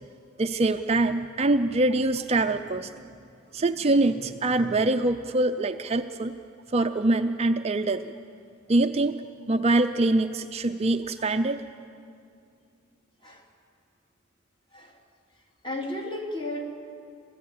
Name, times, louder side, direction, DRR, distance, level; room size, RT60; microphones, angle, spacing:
voice 1, 0.4-2.9 3.5-6.3 6.7-8.1 8.7-9.2 9.5-11.6, right 2 dB, 30° right, 7 dB, 0.5 m, -24 dB
voice 2, 15.6-16.6, left 1 dB, 25° left, 0 dB, 3.0 m, -33 dB
27.5 x 14.5 x 8.7 m, 2.4 s
head